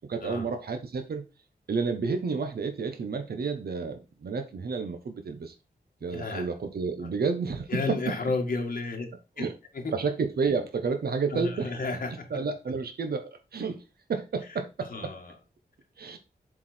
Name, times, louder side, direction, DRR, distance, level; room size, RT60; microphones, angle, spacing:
voice 1, 0.1-1.3 1.7-5.5 6.0-8.2 9.4-9.5 9.9-11.7 12.3-13.2 13.5-13.8 14.1-15.1 16.0-16.2, right 5 dB, 70° right, 1.1 m, -30 dB
voice 2, 6.0-6.5 7.7-9.1 11.3-12.2 14.9-15.2, left 3 dB, 60° left, 2.0 m, -31 dB
7.5 x 4.8 x 4.4 m
wide cardioid pair, 170°, 17 cm